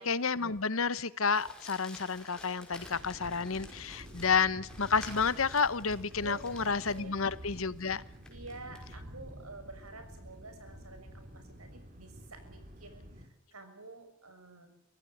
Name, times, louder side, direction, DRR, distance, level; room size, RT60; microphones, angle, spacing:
voice 1, 0.0-8.0, left 5 dB, 70° left, 17 dB, 1.0 m, -30 dB
Crumpling crinkling, 1.3-8.9, left 1 dB, 5° left, 5.2 m, -52 dB
sound 1, 2.8-13.3, equal, 40° right, 3.4 m, -49 dB
voice 2, 6.2-7.2 8.3-14.7, right 3 dB, 85° right, 7 dB, 6.4 m, -49 dB
25.0 x 17.0 x 8.0 m, 0.85 s
head